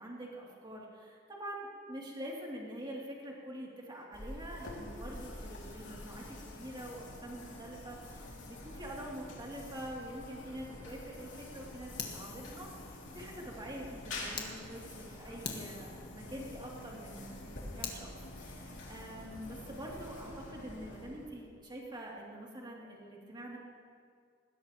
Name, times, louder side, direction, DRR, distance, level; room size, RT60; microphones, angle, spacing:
voice 1, 0.0-23.6, right 1 dB, 25° right, -3 dB, 3.0 m, -45 dB
sound 1, 4.1-21.5, left 2 dB, 85° left, 2.8 m, -47 dB
Fire, 12.0-14.5 15.0-15.1 15.4-18.0, left 6 dB, 60° left, 1.7 m, -46 dB
20.0 x 16.5 x 3.1 m, 2.1 s
head